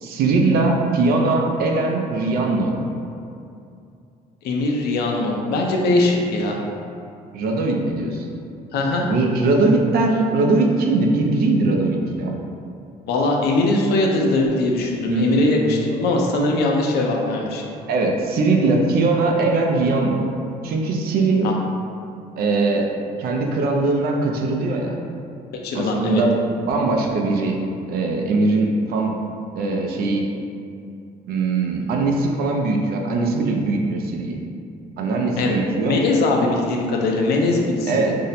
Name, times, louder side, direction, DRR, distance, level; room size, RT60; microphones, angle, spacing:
voice 1, 0.0-2.8 7.3-8.3 9.1-12.4 15.1-15.3 17.9-20.3 20.6-21.5 22.4-22.9 23.2-25.0 25.7-26.3 26.6-27.6 27.9-29.2 29.6-30.3 31.3-34.4 35.0-36.0 37.9-38.2, right 3 dB, 65° right, 1 dB, 0.4 m, -20 dB
voice 2, 4.4-6.6 8.7-9.1 13.1-17.6 21.4-21.6 25.6-26.2 35.4-38.1, left 2 dB, 70° left, 0 dB, 0.5 m, -21 dB
2.7 x 2.1 x 4.0 m, 2.5 s
cardioid pair, 110°, 17 cm